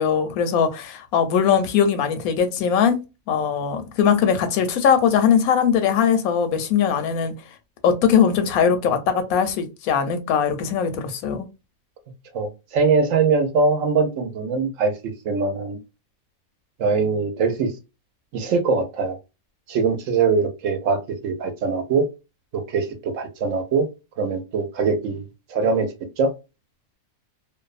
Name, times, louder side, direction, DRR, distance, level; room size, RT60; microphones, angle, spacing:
voice 1, 0.0-3.0 3.3-7.3 7.8-11.5, left 7 dB, 80° left, 1.0 m, -20 dB
voice 2, 12.3-14.9 15.2-15.8 16.8-17.7 18.3-19.2 19.7-22.0 22.5-23.9 24.2-25.2 25.5-25.9 26.2-26.3, right 4 dB, 70° right, 0.9 m, -22 dB
2.6 x 2.2 x 2.3 m
omnidirectional pair, 1.5 m